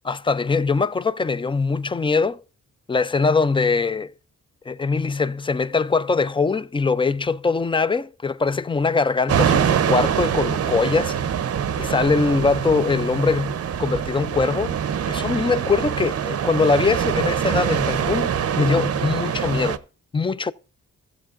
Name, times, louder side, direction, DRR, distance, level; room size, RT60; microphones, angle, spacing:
voice 1, 0.0-2.4 2.9-4.1 4.7-11.2 11.8-14.8 15.1-19.8 20.1-20.5, left 4 dB, 15° left, 0.3 m, -22 dB
sound 1, 9.3-19.8, right 8 dB, 50° right, 0.6 m, -24 dB
15.0 x 7.3 x 2.5 m
cardioid pair, 85°, 31 cm